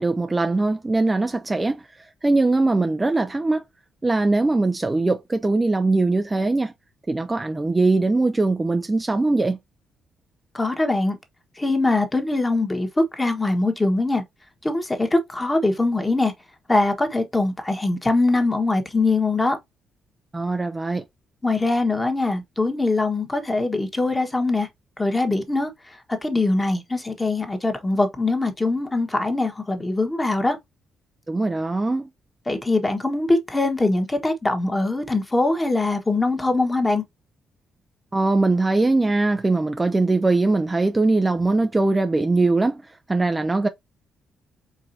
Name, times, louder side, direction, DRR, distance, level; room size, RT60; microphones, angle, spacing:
voice 1, 0.0-1.8 2.2-3.6 4.0-6.7 7.1-9.6 20.3-21.0 31.3-32.1 38.1-42.8 43.1-43.7, right 2 dB, 20° right, 0.5 m, -21 dB
voice 2, 10.5-11.2 11.6-14.2 14.6-16.3 16.7-19.6 21.4-24.7 25.0-25.7 26.2-30.6 32.5-37.0, left 2 dB, 15° left, 1.4 m, -22 dB
4.7 x 3.8 x 2.7 m
cardioid pair, 90°, 0 cm